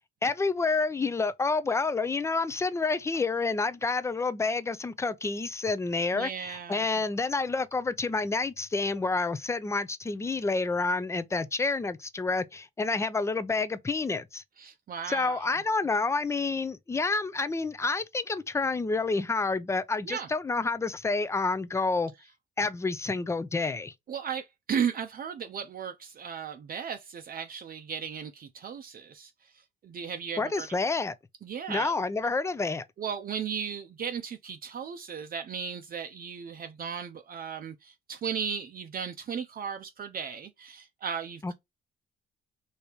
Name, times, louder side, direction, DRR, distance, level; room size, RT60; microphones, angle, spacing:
voice 1, 0.2-14.4 15.1-22.1 22.6-23.9 30.4-31.1 31.7-32.8 41.4-41.5, left 3 dB, 15° left, 0.4 m, -29 dB
voice 2, 6.1-6.9 14.6-15.5 20.1-20.3 24.1-29.3 29.8-30.7 31.4-31.9 33.0-41.5, right 7 dB, 45° right, 0.5 m, -35 dB
3.3 x 2.8 x 2.8 m
cardioid pair, 90°, 20 cm